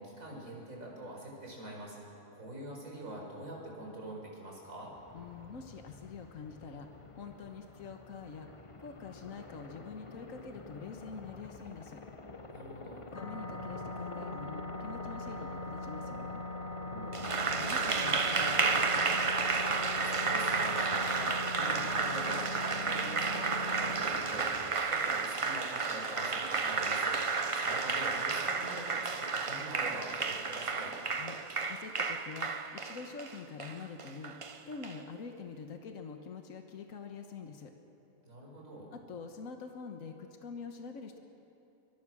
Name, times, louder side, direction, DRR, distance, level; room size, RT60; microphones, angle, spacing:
voice 1, 0.0-4.9 12.5-13.1 16.8-17.4 19.7-27.2 27.5-31.0 38.2-38.9, right 1 dB, 75° right, -1 dB, 5.3 m, -45 dB
Aircraft, 4.8-24.7, left 2 dB, 25° left, 0.9 m, -48 dB
voice 2, 5.1-6.9 7.1-8.5 8.8-12.0 13.1-16.4 17.5-19.2 31.1-31.4 31.7-34.3 34.7-37.7 38.9-41.2, left 5 dB, 75° left, 5 dB, 1.6 m, -45 dB
sound 1, 13.1-24.0, left 2 dB, 50° left, 3.4 m, -41 dB
Applause, 17.1-35.0, right 4 dB, 35° right, 0.6 m, -32 dB
23.5 x 22.0 x 6.2 m, 2.8 s
omnidirectional pair, 1.4 m